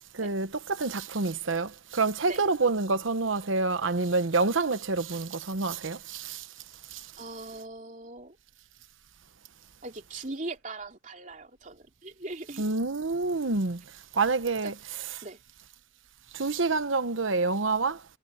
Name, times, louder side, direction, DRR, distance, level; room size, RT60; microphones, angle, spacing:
voice 1, 0.1-6.5 6.9-7.1 12.6-13.8 14.1-14.7 16.3-18.0, right 3 dB, 75° right, 1.0 m, -27 dB
voice 2, 7.2-8.4 9.8-12.6 14.6-14.7 15.2-15.4, right 2 dB, 40° right, 3.2 m, -40 dB
head